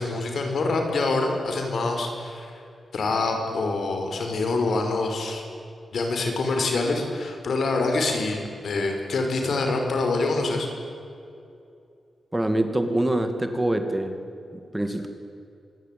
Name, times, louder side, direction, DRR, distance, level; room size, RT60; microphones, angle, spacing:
voice 1, 0.0-2.6 2.9-5.5 5.9-10.7, left 3 dB, 70° left, 3 dB, 5.4 m, -25 dB
voice 2, 12.3-14.2 14.7-15.1, right 1 dB, 10° right, 7 dB, 2.1 m, -24 dB
26.0 x 21.0 x 9.3 m, 2.6 s
wide cardioid pair, 120°, 0 cm